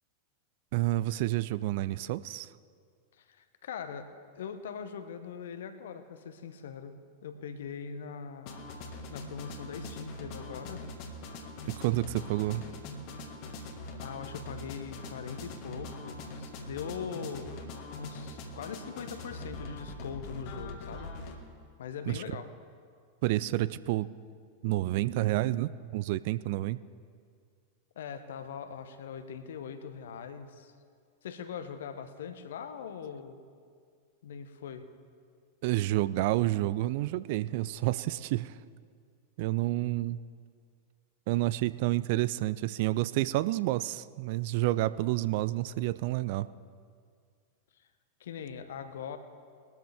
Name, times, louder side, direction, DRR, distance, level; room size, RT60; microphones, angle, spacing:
voice 1, 0.7-2.5 11.8-12.6 22.1-22.2 23.2-24.1 24.6-26.8 35.6-38.5 39.4-40.2 41.3-46.5, right 16 dB, 50° right, 17 dB, 0.3 m, -29 dB
voice 2, 3.2-4.1 4.4-7.0 7.2-8.6 9.1-10.8 14.0-17.6 18.0-21.1 21.8-22.5 28.0-30.7 31.2-33.4 34.2-34.9 47.8-47.9 48.2-49.2, left 7 dB, 60° left, 9 dB, 1.0 m, -41 dB
sound 1, 8.5-21.4, left 2 dB, 45° left, 1.6 m, -42 dB
20.5 x 13.0 x 3.5 m, 2.1 s
figure-of-eight pair, 90°, 0 cm